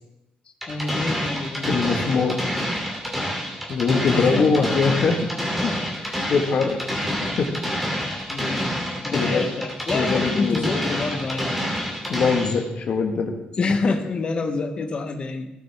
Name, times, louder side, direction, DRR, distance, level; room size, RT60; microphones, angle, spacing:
sound 1, 0.6-12.6, equal, 5° right, 2.8 m, -27 dB
voice 1, 0.7-1.8 3.8-4.7 8.3-11.5 13.6-15.5, left 3 dB, 35° left, 6 dB, 1.0 m, -27 dB
voice 2, 1.7-2.4 3.7-5.3 5.6-5.7 6.0-6.8 7.2-7.5 8.4-8.6 9.1-9.5 9.9-10.7 12.1-13.3, left 4 dB, 55° left, 3 dB, 1.6 m, -22 dB
17.5 x 8.9 x 3.5 m, 0.94 s
wide cardioid pair, 175°, 3 cm